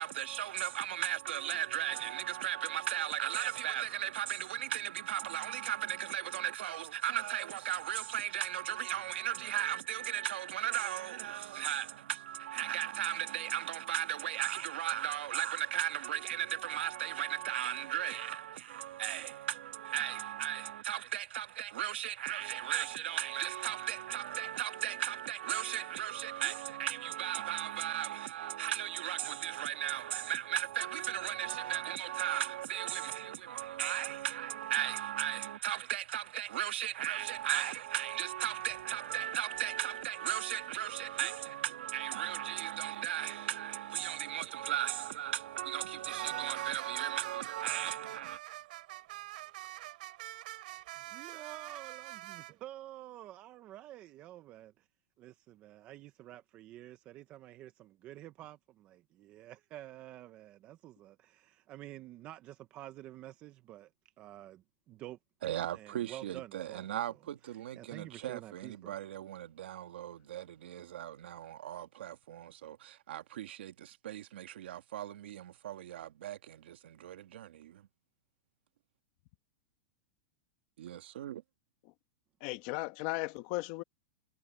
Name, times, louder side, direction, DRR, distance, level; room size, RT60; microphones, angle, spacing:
voice 1, 0.0-48.4 65.4-77.8 80.8-81.4, right 12 dB, 75° right, 1.9 m, -36 dB
sound 1, 38.7-41.6 42.0-52.5, right 17 dB, 50° right, 4.8 m, -48 dB
voice 2, 51.0-54.9 55.2-63.9 64.2-65.2 65.7-67.2 67.4-69.0, right 14 dB, 20° right, 0.5 m, -49 dB
voice 3, 82.4-83.8, left 20 dB, 35° left, 1.1 m, -36 dB
supercardioid pair, 175°, 6 cm